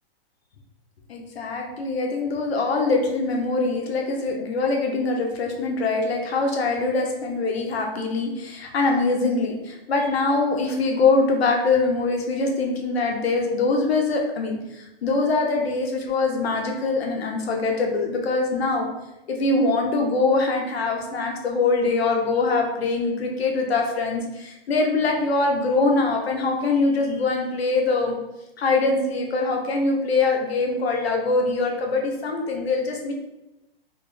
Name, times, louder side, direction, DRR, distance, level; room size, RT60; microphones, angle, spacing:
voice 1, 1.1-18.9 19.3-28.1 28.6-33.1, left 3 dB, 90° left, 1 dB, 0.9 m, -23 dB
3.7 x 2.0 x 3.3 m, 0.95 s
hypercardioid pair, 175°, 30 cm